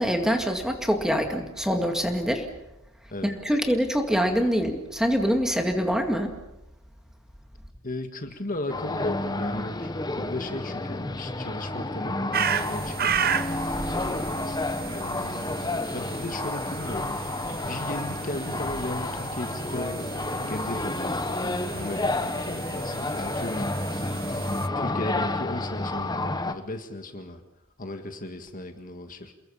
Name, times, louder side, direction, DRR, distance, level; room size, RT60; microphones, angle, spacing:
voice 1, 0.0-2.5 3.2-6.3, equal, ahead, 4 dB, 2.2 m, -25 dB
voice 2, 7.8-13.6 14.9-15.6 15.9-17.2 17.5-20.0 20.5-23.7 24.7-27.4 27.8-29.3, left 1 dB, 40° left, 6 dB, 1.7 m, -36 dB
sound 1, 8.7-26.5, left 2 dB, 20° left, 1.1 m, -30 dB
sound 2, 12.3-24.7, right 7 dB, 45° right, 0.8 m, -34 dB
29.0 x 21.5 x 5.6 m, 0.91 s
head